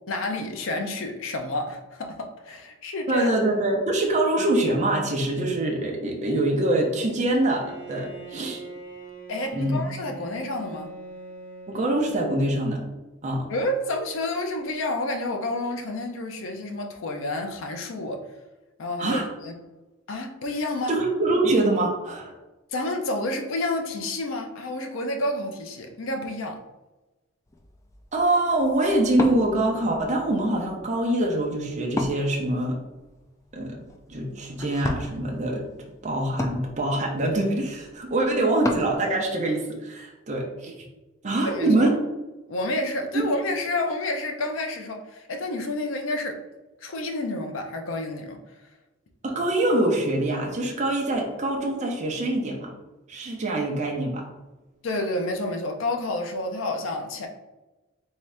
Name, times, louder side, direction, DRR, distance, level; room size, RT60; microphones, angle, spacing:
voice 1, 0.1-3.3 9.3-10.9 13.5-18.2 18.8-19.5 20.1-20.9 22.7-26.6 41.4-41.9 42.5-46.4 46.8-48.4 54.8-57.3, left 2 dB, 80° left, 4 dB, 0.5 m, -29 dB
voice 2, 3.1-8.6 9.5-9.8 11.7-12.8 13.2-13.5 19.0-19.3 20.9-22.3 28.1-32.8 33.5-33.8 34.1-35.7 36.0-40.7 41.2-41.9 43.1-43.2 49.2-52.7 53.1-54.2, right 1 dB, 35° right, -1 dB, 0.6 m, -24 dB
Bowed string instrument, 7.4-12.8, right 2 dB, 45° left, 1.0 m, -43 dB
Wood, 27.5-39.0, left 1 dB, 15° left, 0.3 m, -36 dB
3.5 x 2.7 x 3.3 m, 1.1 s
head